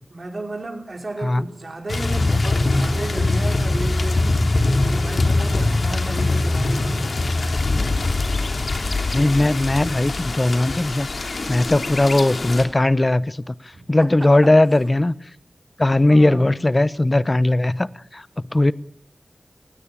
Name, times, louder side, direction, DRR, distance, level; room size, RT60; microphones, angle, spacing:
voice 1, 0.1-7.3 13.7-14.5 16.1-16.6, right 2 dB, 50° right, 5.2 m, -34 dB
sound 1, 1.9-12.6, left 2 dB, 75° left, 2.7 m, -22 dB
voice 2, 9.1-15.1 15.8-18.3 18.5-18.7, left 2 dB, 35° left, 0.8 m, -18 dB
20.5 x 17.0 x 9.0 m
wide cardioid pair, 60°, 0 cm